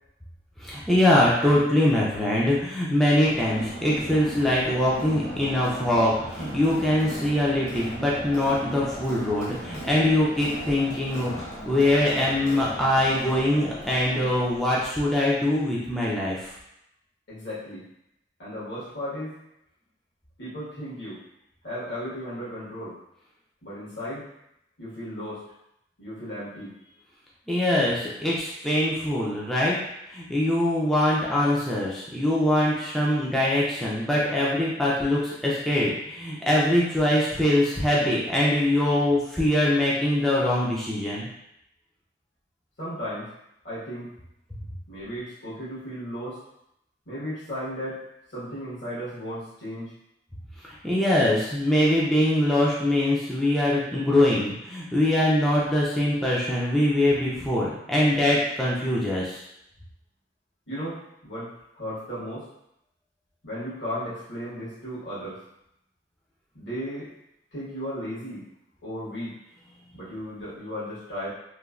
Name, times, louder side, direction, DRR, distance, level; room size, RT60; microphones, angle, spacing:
voice 1, 0.6-16.4 27.5-29.8 30.1-41.3 50.6-59.4, left 1 dB, ahead, -6 dB, 0.3 m, -23 dB
Crowd, 3.2-14.8, right 1 dB, 50° left, 0.7 m, -38 dB
voice 2, 17.3-17.8 18.4-19.3 20.4-21.2 21.6-22.9 23.6-24.2 24.8-25.4 26.0-26.7 42.8-43.3 43.6-44.1 44.9-46.4 47.1-48.0 48.3-49.9 60.7-61.5 61.8-62.4 63.4-65.4 66.5-67.1 67.5-68.4 68.8-69.3 69.9-71.3, equal, 75° left, -9 dB, 1.3 m, -35 dB
3.0 x 2.1 x 2.3 m, 0.81 s
head